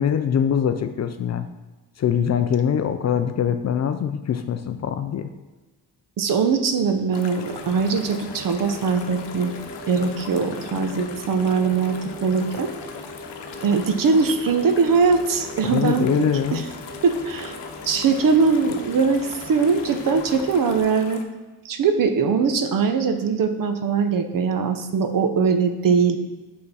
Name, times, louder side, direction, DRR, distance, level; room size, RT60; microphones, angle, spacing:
voice 1, 0.0-1.5 2.0-5.3 15.6-16.6, left 8 dB, 40° left, 9 dB, 0.4 m, -23 dB
voice 2, 6.2-9.5 9.9-12.7 13.6-16.1 16.5-16.6 17.0-17.6 17.9-21.2 21.6-26.2, right 5 dB, 50° right, 8 dB, 0.7 m, -21 dB
sound 1, 7.1-21.2, left 7 dB, 75° left, 0.9 m, -41 dB
sound 2, 7.4-20.8, left 1 dB, 20° left, 1.2 m, -39 dB
5.9 x 5.6 x 4.1 m, 1.2 s
cardioid pair, 120°, 42 cm